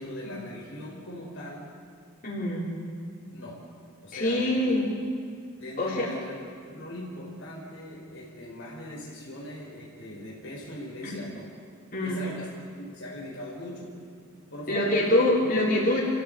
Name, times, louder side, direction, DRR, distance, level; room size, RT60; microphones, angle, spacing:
voice 1, 0.0-1.7 3.3-3.6 4.0-4.7 5.6-6.3 6.7-11.5 12.0-12.5 12.8-13.9 14.3-15.2, left 1 dB, 60° left, -4 dB, 5.1 m, -40 dB
voice 2, 2.2-2.6 4.1-4.8 5.8-6.1 11.0-11.2 11.9-12.2 14.7-16.0, left 1 dB, 40° left, -5 dB, 5.8 m, -25 dB
29.5 x 16.0 x 8.4 m, 2.1 s
head